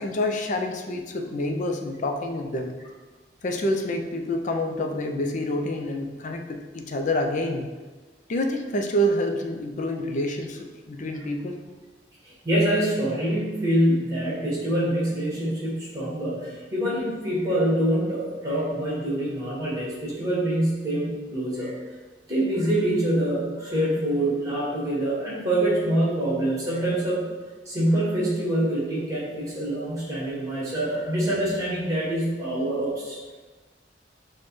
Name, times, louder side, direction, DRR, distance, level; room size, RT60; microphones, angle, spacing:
voice 1, 0.0-2.7 3.4-7.7 8.3-11.6, left 1 dB, 45° left, 3 dB, 0.4 m, -27 dB
voice 2, 12.2-21.7 22.3-27.3 27.6-33.2, right 1 dB, 20° right, -6 dB, 1.5 m, -25 dB
6.3 x 2.1 x 3.1 m, 1.3 s
head